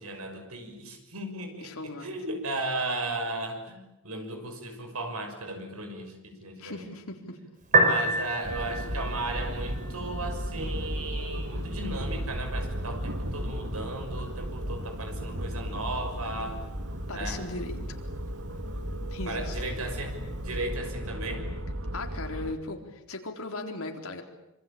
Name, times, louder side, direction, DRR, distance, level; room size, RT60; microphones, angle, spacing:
voice 1, 0.0-6.9 7.7-16.6 17.1-17.4 19.3-21.5, right 2 dB, 90° right, 5 dB, 6.2 m, -35 dB
voice 2, 1.6-2.1 6.6-7.4 17.1-17.8 19.1-19.6 21.9-24.2, left 2 dB, 80° left, 3 dB, 4.0 m, -37 dB
Piano, 7.6-20.6, right 2 dB, 35° right, 5.9 m, -34 dB
sound 1, 8.4-22.5, equal, 70° right, 2.6 m, -35 dB
26.5 x 25.0 x 8.7 m, 0.88 s
head